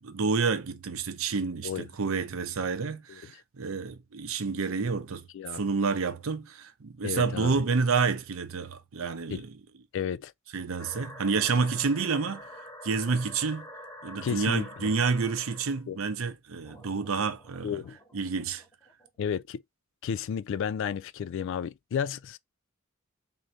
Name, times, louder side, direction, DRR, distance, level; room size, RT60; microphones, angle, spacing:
voice 1, 0.0-5.3 5.5-9.6 10.5-12.5 12.8-13.7 14.0-17.8 18.1-18.6, right 4 dB, 80° right, 0.6 m, -29 dB
voice 2, 7.0-7.6 9.3-9.4 9.9-10.3 14.2-14.9 15.9-16.0 17.6-18.0 19.2-19.6 20.0-22.4, left 7 dB, 65° left, 0.3 m, -32 dB
sound 1, 10.8-15.8 16.6-19.1, left 1 dB, 20° left, 1.1 m, -47 dB
3.7 x 2.7 x 3.1 m
head